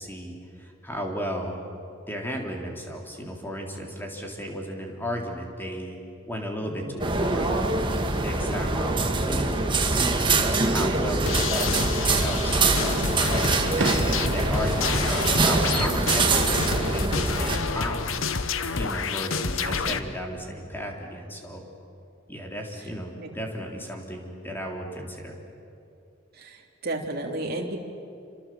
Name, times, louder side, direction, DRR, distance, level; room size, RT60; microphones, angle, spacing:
voice 1, 0.0-1.6 2.1-6.0 6.3-7.5 8.1-12.5 13.3-15.0 15.3-18.2 18.7-21.7 22.3-25.3, equal, 10° left, 0 dB, 3.8 m, -34 dB
voice 2, 6.6-7.0 19.3-20.1 23.2-23.3 26.3-27.8, right 2 dB, 50° right, 1 dB, 3.1 m, -34 dB
sound 1, 7.0-17.6, right 3 dB, 25° right, 2.0 m, -24 dB
sound 2, 11.3-20.0, left 5 dB, 90° left, 1.1 m, -29 dB
Fireworks, 13.1-16.3 16.6-17.1 18.7-19.5, right 2 dB, 75° right, 1.4 m, -37 dB
28.0 x 26.5 x 7.8 m, 2.6 s
head